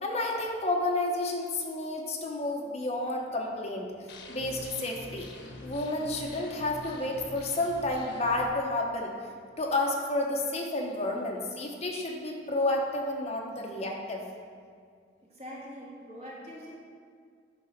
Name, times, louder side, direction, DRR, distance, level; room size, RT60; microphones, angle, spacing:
voice 1, 0.0-3.9 4.3-5.3 5.6-9.1 9.6-14.2, left 2 dB, 35° left, 0 dB, 1.0 m, -30 dB
sound 1, 4.1-8.5, left 2 dB, 75° left, 1.0 m, -45 dB
voice 2, 15.2-16.7, equal, 35° right, -5 dB, 1.9 m, -43 dB
9.2 x 3.8 x 5.8 m, 2.1 s
head